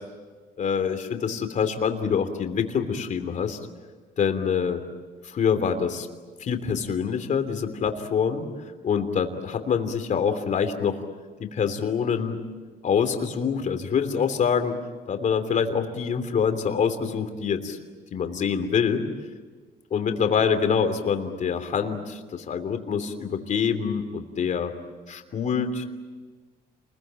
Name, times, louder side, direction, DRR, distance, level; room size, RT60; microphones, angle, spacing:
voice 1, 0.6-3.6 4.2-4.8 5.2-6.1 6.4-8.5 8.8-11.0 11.4-12.4 12.8-14.7 15.1-17.8 18.1-19.0 19.9-24.7 25.1-25.8, left 6 dB, 45° left, 7 dB, 3.1 m, -25 dB
28.5 x 21.5 x 9.1 m, 1.4 s
cardioid pair, 110°, 17 cm